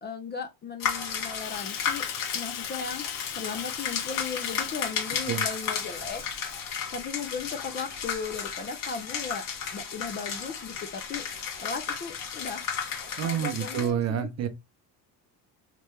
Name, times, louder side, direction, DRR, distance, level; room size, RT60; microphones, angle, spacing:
voice 1, 0.0-2.1 2.3-3.1 3.4-6.2 6.9-9.5 9.7-11.3 11.6-12.6 13.2-14.3, left 5 dB, 25° left, 0.4 m, -36 dB
sound 1, 0.8-13.9, left 7 dB, 50° left, 1.3 m, -33 dB
Bathtub (filling or washing), 1.4-6.8 7.2-7.6 8.2-9.0, left 15 dB, 80° left, 0.6 m, -43 dB
voice 2, 13.2-14.5, right 9 dB, 40° right, 0.6 m, -28 dB
3.3 x 3.0 x 3.2 m
cardioid pair, 130°, 42 cm